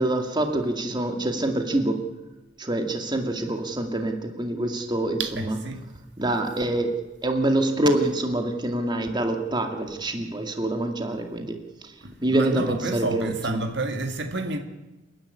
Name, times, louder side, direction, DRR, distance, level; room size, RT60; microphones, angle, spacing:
voice 1, 0.0-2.1 2.6-5.6 6.2-11.9 12.2-13.6, right 1 dB, 25° right, 2.2 m, -26 dB
voice 2, 5.2-5.8 12.0-14.6, right 2 dB, 60° right, 1.9 m, -30 dB
29.0 x 10.5 x 9.8 m
head